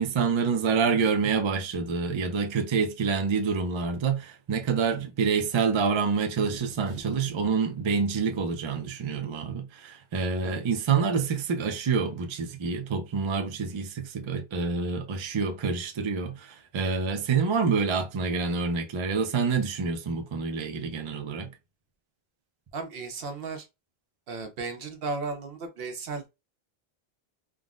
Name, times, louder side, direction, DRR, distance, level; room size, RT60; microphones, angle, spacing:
voice 1, 0.0-21.5, right 5 dB, 50° right, 0.3 m, -27 dB
voice 2, 6.4-7.3 10.4-10.6 22.7-23.7 24.3-26.3, right 4 dB, 70° right, 0.9 m, -36 dB
3.6 x 2.0 x 2.3 m
omnidirectional pair, 1.0 m